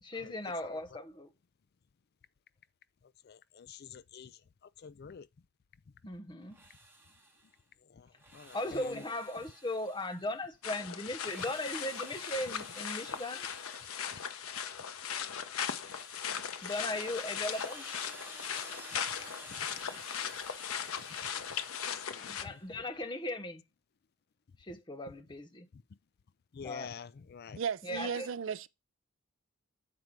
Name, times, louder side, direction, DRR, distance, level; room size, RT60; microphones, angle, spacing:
voice 1, 0.0-1.3 6.0-6.6 8.5-13.5 16.6-17.9 22.3-23.6 24.6-25.7 26.6-26.9 27.8-28.3, left 1 dB, 20° left, 1.0 m, -38 dB
voice 2, 3.2-5.3 7.9-9.0 19.6-20.0 21.6-22.8 25.7-25.8 26.5-27.6, left 6 dB, 50° left, 0.4 m, -48 dB
Drill, 6.4-7.6 8.1-10.5 11.0-14.7 15.2-22.7, right 2 dB, 10° right, 1.8 m, -53 dB
sound 1, 10.6-22.4, left 8 dB, 85° left, 0.9 m, -38 dB
voice 3, 27.6-28.7, right 7 dB, 60° right, 0.4 m, -35 dB
7.7 x 4.7 x 5.2 m
head